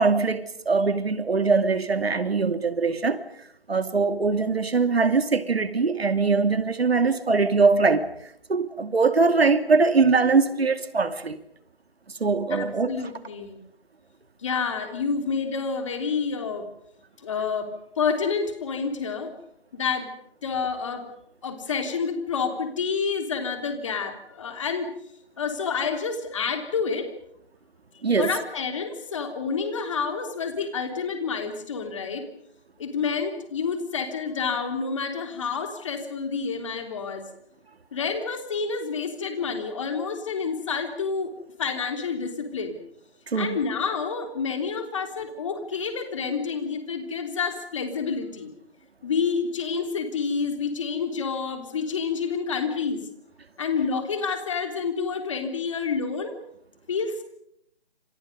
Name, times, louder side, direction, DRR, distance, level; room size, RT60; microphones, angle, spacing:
voice 1, 0.0-3.2 3.7-8.1 8.5-11.4 12.2-12.9 28.0-28.3 43.3-43.6, right 4 dB, 70° right, 2.6 m, -22 dB
voice 2, 12.5-13.6 14.4-16.7 17.2-17.7 18.0-19.3 19.7-20.1 20.4-21.1 21.4-24.9 25.4-27.1 28.2-32.2 32.8-37.3 37.9-41.3 41.6-42.8 43.3-48.5 49.0-53.0 53.6-56.4 56.9-57.2, left 5 dB, 30° left, 3.4 m, -28 dB
30.0 x 27.5 x 5.4 m
figure-of-eight pair, 170°, 32 cm